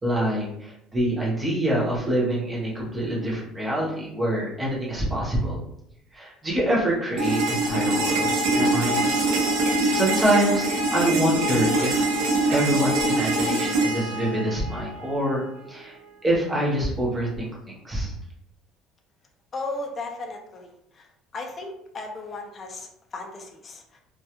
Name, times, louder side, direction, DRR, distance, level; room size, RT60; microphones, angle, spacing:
voice 1, 0.0-5.6 6.1-9.0 9.9-12.0 12.5-15.4 15.7-15.9 16.2-17.5 17.8-18.1, right 1 dB, 15° right, -5 dB, 0.8 m, -25 dB
sound 1, 7.2-15.2, right 2 dB, 75° right, 0.5 m, -24 dB
voice 2, 19.5-21.1 21.3-24.0, left 2 dB, 25° left, 2 dB, 0.4 m, -36 dB
2.2 x 2.2 x 2.9 m, 0.76 s
cardioid pair, 160°, 0 cm